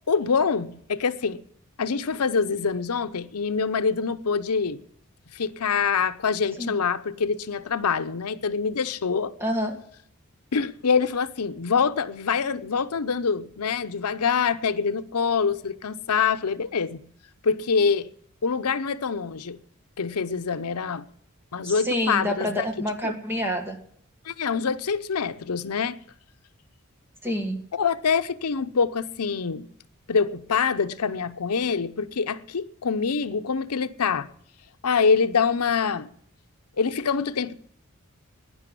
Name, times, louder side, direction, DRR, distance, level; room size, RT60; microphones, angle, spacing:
voice 1, 0.1-1.4 1.8-4.8 5.3-9.3 10.5-17.0 17.4-18.1 18.4-19.6 20.0-21.0 21.5-23.1 24.2-26.0 27.7-29.7 30.1-34.3 34.8-36.1 36.8-37.6, left 5 dB, 85° left, 0.7 m, -25 dB
voice 2, 9.4-9.7 21.7-23.8 27.2-27.6, equal, 10° right, 1.8 m, -27 dB
11.0 x 9.9 x 10.0 m
head